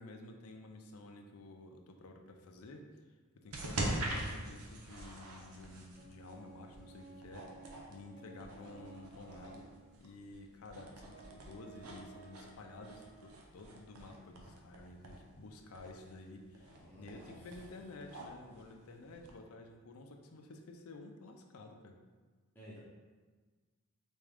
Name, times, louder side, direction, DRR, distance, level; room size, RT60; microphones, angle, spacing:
voice 1, 0.0-2.8 3.3-7.5 7.9-9.7 10.0-22.0, left 2 dB, 80° left, 3 dB, 0.5 m, -52 dB
sound 1, 3.5-19.3, right 1 dB, 85° right, 0.7 m, -45 dB
Organ, 6.0-9.9 10.6-10.7 11.1-13.2, right 5 dB, 45° right, 0.6 m, -57 dB
voice 2, 16.7-17.3 22.5-22.8, equal, 10° left, -9 dB, 0.7 m, -53 dB
4.2 x 3.6 x 3.4 m, 1.4 s
head